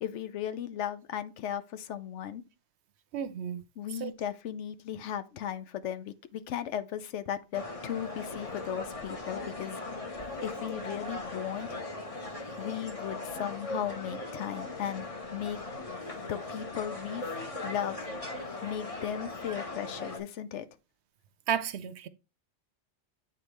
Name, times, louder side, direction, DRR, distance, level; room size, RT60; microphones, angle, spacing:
voice 1, 0.0-2.4 3.8-9.8 10.4-11.7 12.6-15.1 15.3-15.7 16.2-17.3 17.6-18.0 18.6-20.7, left 10 dB, 90° left, 1.0 m, -36 dB
voice 2, 3.1-3.6 4.0-4.1 21.5-22.1, right 8 dB, 75° right, 0.9 m, -32 dB
sound 1, 7.5-20.2, left 2 dB, 30° left, 1.1 m, -39 dB
9.1 x 3.8 x 3.1 m
omnidirectional pair, 1.2 m